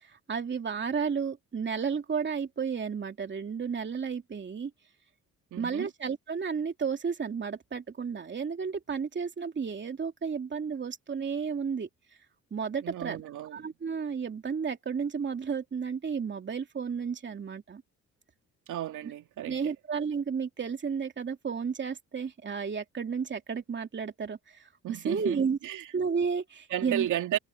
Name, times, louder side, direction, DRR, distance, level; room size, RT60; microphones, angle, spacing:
voice 1, 0.0-4.7 5.6-11.9 12.5-17.8 19.0-19.1 19.5-25.6 25.9-27.1, right 6 dB, 40° right, 2.8 m, -32 dB
voice 2, 5.5-5.9 12.8-13.6 18.7-19.7 24.8-25.8 26.7-27.4, right 12 dB, 80° right, 2.6 m, -33 dB
cardioid pair, 90°, 30 cm